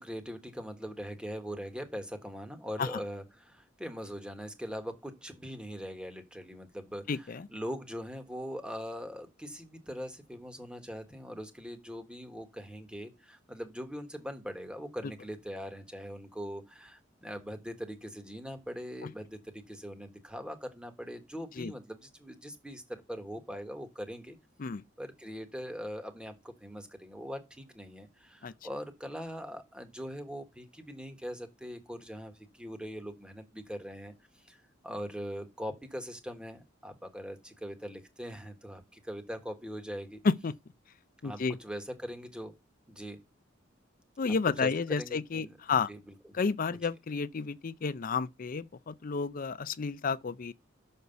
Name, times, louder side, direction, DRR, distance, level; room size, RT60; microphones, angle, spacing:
voice 1, 0.0-24.4 25.0-34.1 34.4-34.6 34.8-40.2 41.2-42.5 42.9-43.2 44.6-45.6 45.9-46.0, equal, 5° right, 1.4 m, -41 dB
voice 2, 7.1-7.5 19.0-19.1 21.6-21.7 24.6-24.8 28.4-28.5 40.2-40.6 41.2-41.6 44.2-45.9 46.3-50.5, left 5 dB, 45° left, 0.5 m, -31 dB
6.4 x 5.4 x 6.8 m
head